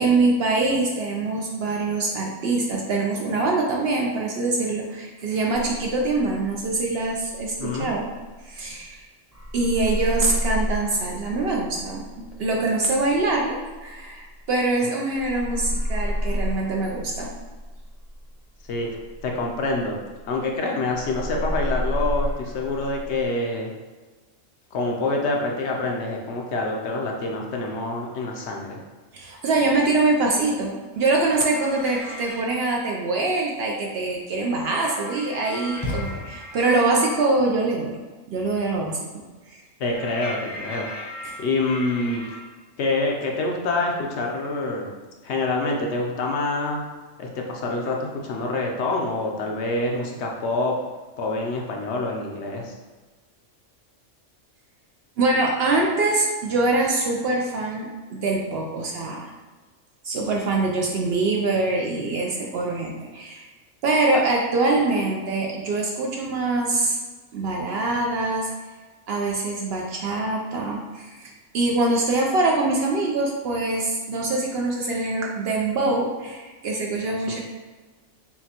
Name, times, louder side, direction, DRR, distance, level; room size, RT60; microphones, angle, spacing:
voice 1, 0.0-8.1 8.4-9.0 9.5-17.3 29.1-38.0 38.3-39.0 41.2-41.4 55.2-59.3 60.0-63.5 63.8-67.0 67.3-68.5 69.1-77.4, right 2 dB, 65° right, -1 dB, 0.7 m, -24 dB
sound 1, 5.5-9.0 9.3-14.8 15.1-20.6 20.9-23.3, equal, 15° right, 0.8 m, -31 dB
voice 2, 7.6-7.9 18.7-18.9 19.2-20.0 20.3-23.7 24.7-28.8 39.8-40.9 41.4-42.2 42.8-44.9 45.2-46.8 47.2-50.8 51.2-52.7, left 2 dB, 65° left, 0 dB, 0.8 m, -26 dB
sound 2, 30.9-32.5 34.5-37.3 39.9-42.4, left 1 dB, 85° left, 1.7 m, -38 dB
sound 3, 35.7-36.8, left 2 dB, 35° left, 0.5 m, -32 dB
5.6 x 2.2 x 2.8 m, 1.3 s
omnidirectional pair, 1.3 m